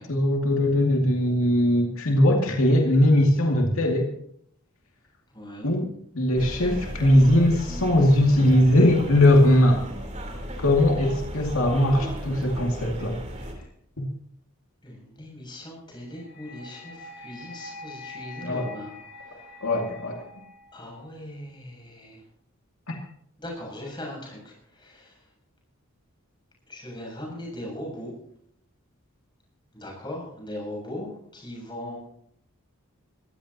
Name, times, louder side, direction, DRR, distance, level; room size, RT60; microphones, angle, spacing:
voice 1, 0.1-4.1 5.6-5.9 6.1-9.8 10.6-13.2 14.0-14.1 18.4-18.7 19.6-20.2 22.9-23.0, left 1 dB, 75° left, 0 dB, 2.5 m, -20 dB
voice 2, 5.3-5.7 14.8-19.7 20.7-22.2 23.4-25.3 26.7-28.2 29.7-32.0, left 1 dB, 20° left, -2 dB, 7.4 m, -39 dB
sound 1, 6.4-13.5, equal, 30° right, 3.7 m, -35 dB
sound 2, 16.0-21.1, left 2 dB, 50° left, 3.3 m, -44 dB
22.5 x 15.5 x 3.0 m, 0.69 s
head